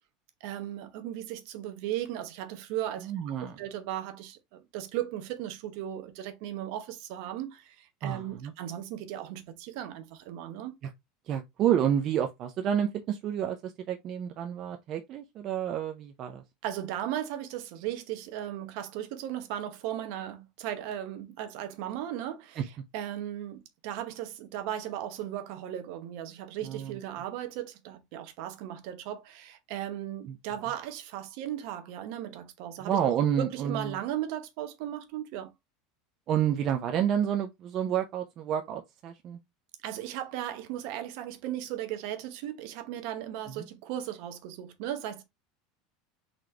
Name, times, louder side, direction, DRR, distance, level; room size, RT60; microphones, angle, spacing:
voice 1, 0.4-4.4 4.7-10.8 16.6-22.6 22.9-35.5 39.8-45.2, right 11 dB, 65° right, 0.9 m, -36 dB
voice 2, 3.0-3.6 8.0-8.5 10.8-10.9 11.3-16.4 22.6-22.7 26.6-27.0 30.3-30.4 32.8-34.0 36.3-39.4 43.5-43.6, right 9 dB, 45° right, 0.5 m, -29 dB
4.0 x 3.0 x 3.2 m
supercardioid pair, 130°, 0 cm